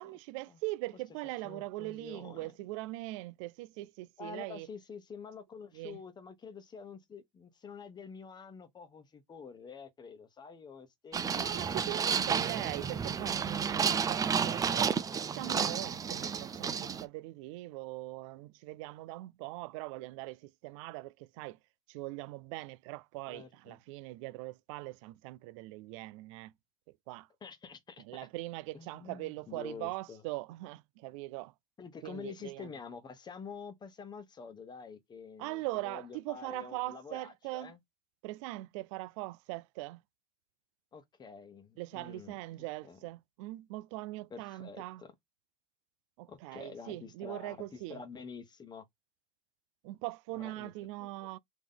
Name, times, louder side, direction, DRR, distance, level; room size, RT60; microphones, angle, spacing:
voice 1, 0.0-4.7 5.7-6.0 11.3-15.0 15.3-21.6 21.9-26.5 27.1-27.3 28.0-31.5 32.0-32.7 35.4-37.7 38.2-40.0 41.8-45.0 46.2-48.0 49.8-51.4, right 19 dB, 80° right, 0.4 m, -41 dB
voice 2, 1.4-2.5 4.2-11.8 12.0-13.1 13.6-13.7 23.3-23.8 27.4-28.0 28.7-30.2 31.8-37.8 40.9-43.0 44.3-45.1 46.3-48.9 50.3-50.7 51.0-51.1, left 5 dB, 25° left, 1.0 m, -48 dB
sound 1, 11.1-17.0, right 7 dB, 20° right, 0.4 m, -31 dB
3.6 x 3.0 x 3.8 m
supercardioid pair, 110°, 16 cm